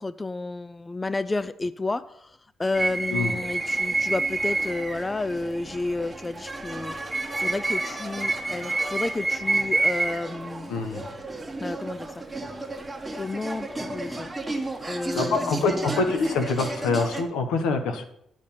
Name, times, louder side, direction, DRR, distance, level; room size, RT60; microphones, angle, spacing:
voice 1, 0.0-6.9 7.3-10.7 11.6-12.2 13.2-14.3 14.9-15.9, left 2 dB, 20° left, 15 dB, 0.4 m, -31 dB
sound 1, 2.7-17.2, right 2 dB, 15° right, 1.2 m, -30 dB
voice 2, 10.7-11.1 15.1-18.0, left 4 dB, 90° left, 7 dB, 1.2 m, -25 dB
10.5 x 5.1 x 5.5 m, 0.73 s
cardioid pair, 90°, 0 cm